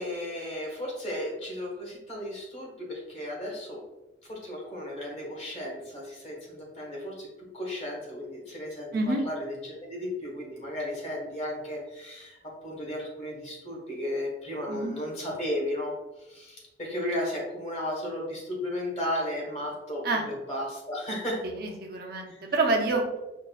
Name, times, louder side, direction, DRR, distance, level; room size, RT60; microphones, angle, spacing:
voice 1, 0.0-3.8 4.2-7.3 7.5-12.4 12.6-16.0 16.3-21.4 22.3-22.4, left 1 dB, 35° left, -4 dB, 1.4 m, -34 dB
voice 2, 8.9-9.3 14.7-15.0 20.0-20.3 21.4-23.0, right 2 dB, 50° right, 1 dB, 0.6 m, -27 dB
5.2 x 2.5 x 2.3 m, 1.0 s
head